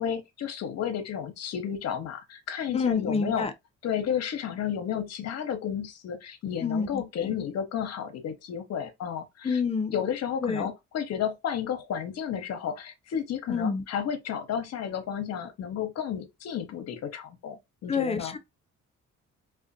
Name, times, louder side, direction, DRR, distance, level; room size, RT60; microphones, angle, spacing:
voice 1, 0.0-3.5 3.8-9.6 9.9-18.4, left 8 dB, 60° left, 0.7 m, -32 dB
voice 2, 2.7-3.5 6.6-7.3 9.4-9.9 10.4-10.7 13.5-13.8 17.9-18.4, left 5 dB, 20° left, 0.4 m, -28 dB
2.4 x 2.2 x 2.6 m
cardioid pair, 90°, 30 cm